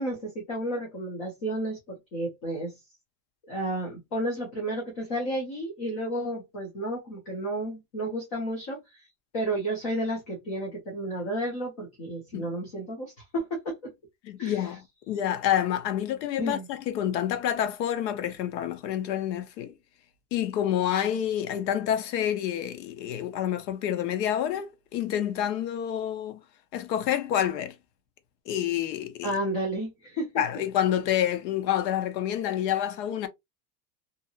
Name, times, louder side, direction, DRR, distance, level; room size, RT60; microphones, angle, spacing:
voice 1, 0.0-2.7 3.5-9.1 9.3-13.7 14.4-14.6 16.4-16.6 29.2-30.3, right 1 dB, 25° left, 0.3 m, -32 dB
voice 2, 14.2-19.7 20.3-26.4 26.7-27.7 28.5-29.3 30.4-33.3, left 10 dB, 85° left, 0.9 m, -28 dB
2.8 x 2.7 x 2.3 m
supercardioid pair, 175°, 49 cm